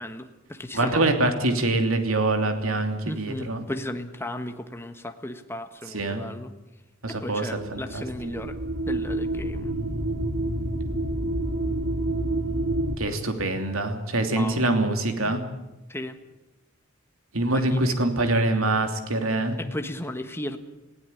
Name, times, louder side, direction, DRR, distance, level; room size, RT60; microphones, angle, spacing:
voice 1, 0.0-1.0 3.0-6.5 7.2-8.6 8.8-9.7 14.3-14.6 15.2-15.4 15.9-16.2 17.5-18.0 19.6-20.6, left 1 dB, 10° left, 7 dB, 1.3 m, -35 dB
voice 2, 0.7-3.6 5.9-6.2 7.0-8.0 13.0-15.4 17.3-19.6, right 2 dB, 85° right, 6 dB, 2.9 m, -24 dB
sound 1, 7.6-13.0, right 1 dB, 70° right, 2.9 m, -28 dB
20.0 x 16.5 x 9.9 m, 0.99 s
head